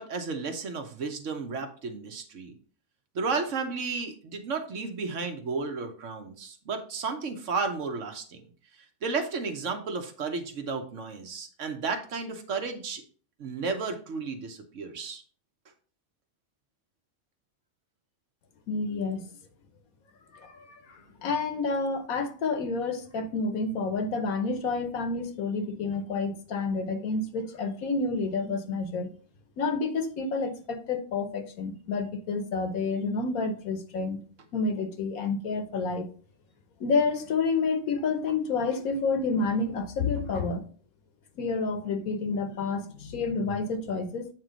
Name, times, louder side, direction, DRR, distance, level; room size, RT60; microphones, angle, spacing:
voice 1, 0.0-2.5 3.1-8.4 9.0-13.0 13.4-15.2, right 4 dB, 65° right, 6 dB, 1.2 m, -33 dB
voice 2, 18.7-19.3 20.3-29.1 29.6-34.2 34.5-36.1 36.8-40.6 41.4-44.3, left 4 dB, 85° left, 8 dB, 1.4 m, -29 dB
8.3 x 3.1 x 5.0 m, 0.42 s
omnidirectional pair, 1.4 m